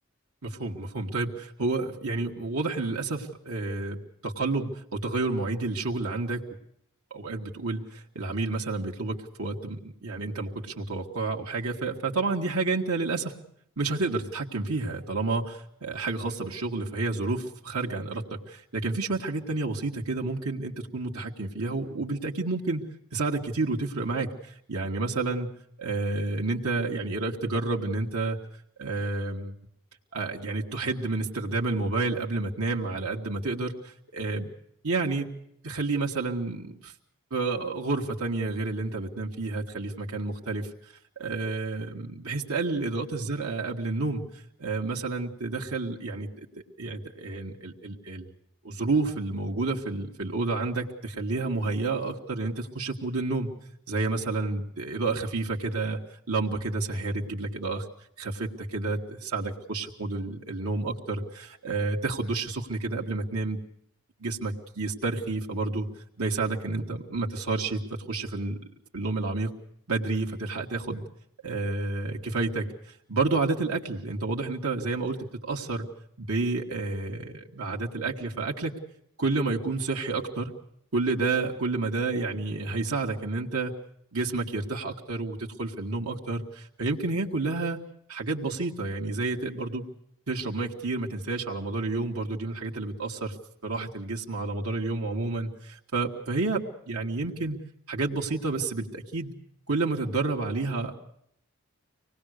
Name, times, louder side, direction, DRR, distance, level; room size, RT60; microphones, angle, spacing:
voice 1, 0.4-6.4 7.1-13.3 13.8-25.5 25.8-28.4 28.8-29.5 30.1-34.5 34.8-35.3 35.6-36.9 37.3-40.7 41.2-44.2 44.6-46.5 46.8-48.3 48.6-53.5 53.9-56.0 56.3-57.8 58.2-63.6 64.2-65.9 66.2-68.6 68.9-69.5 69.9-71.1 71.4-72.7 73.1-75.9 76.2-78.7 79.2-80.5 80.9-83.7 84.1-87.8 88.1-89.8 90.3-93.4 93.6-97.6 97.9-99.3 99.7-101.0, right 3 dB, 85° right, -1 dB, 2.0 m, -30 dB
25.0 x 19.0 x 6.7 m, 0.72 s
head